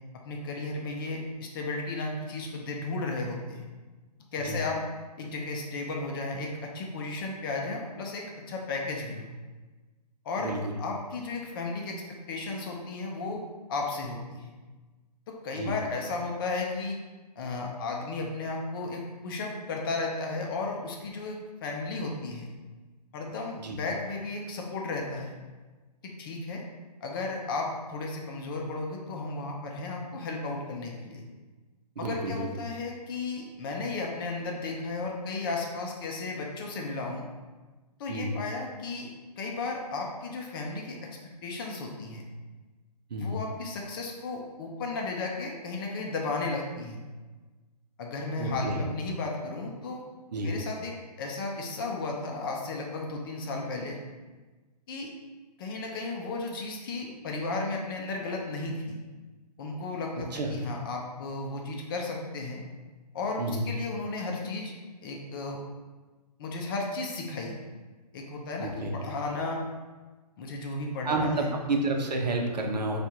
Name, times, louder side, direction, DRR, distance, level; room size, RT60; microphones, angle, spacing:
voice 1, 0.2-3.7 4.3-4.8 5.2-9.3 10.2-10.5 10.8-12.0 12.3-13.4 13.7-14.5 15.3-17.0 17.4-22.5 23.1-25.3 26.0-26.6 27.0-31.2 32.0-37.3 38.0-39.1 39.4-41.0 41.4-42.2 43.2-47.0 48.0-50.0 50.4-54.0 54.9-55.1 55.6-59.0 59.6-62.6 63.1-64.7 65.0-65.6 66.4-67.6 68.1-69.6 70.4-71.5, left 3 dB, 35° left, 0 dB, 0.6 m, -34 dB
voice 2, 32.0-32.5 38.1-38.3 43.1-43.4 48.4-48.8 50.3-50.6 60.3-60.6 63.4-63.7 68.6-69.0 71.0-73.0, right 2 dB, 80° right, 1 dB, 0.8 m, -30 dB
3.5 x 2.5 x 4.3 m, 1.3 s
hypercardioid pair, 145°, 21 cm